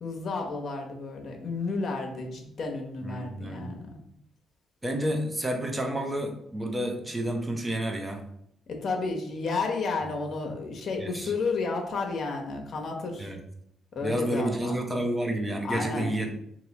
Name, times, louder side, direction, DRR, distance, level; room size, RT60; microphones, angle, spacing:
voice 1, 0.0-4.0 8.7-13.3 13.9-14.8 15.6-16.1, left 4 dB, 50° left, 2 dB, 1.0 m, -32 dB
voice 2, 3.0-3.7 4.8-8.2 11.0-11.3 13.2-13.4 14.0-16.3, right 1 dB, 15° right, 3 dB, 0.8 m, -30 dB
3.1 x 2.9 x 4.0 m, 0.72 s
cardioid pair, 90°, 0 cm